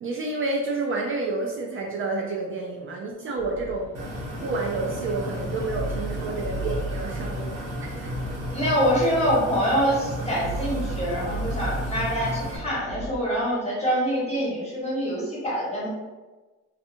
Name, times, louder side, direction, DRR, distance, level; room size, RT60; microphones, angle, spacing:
voice 1, 0.0-3.9 4.4-8.0, right 3 dB, 45° right, -1 dB, 0.4 m, -29 dB
sound 1, 3.4-13.2, right 2 dB, 50° left, 0.4 m, -36 dB
sound 2, 3.9-12.6, equal, 60° right, 0.9 m, -33 dB
voice 2, 8.5-15.9, equal, 20° left, -7 dB, 1.3 m, -25 dB
2.6 x 2.4 x 2.5 m, 1.2 s
cardioid pair, 90°, 30 cm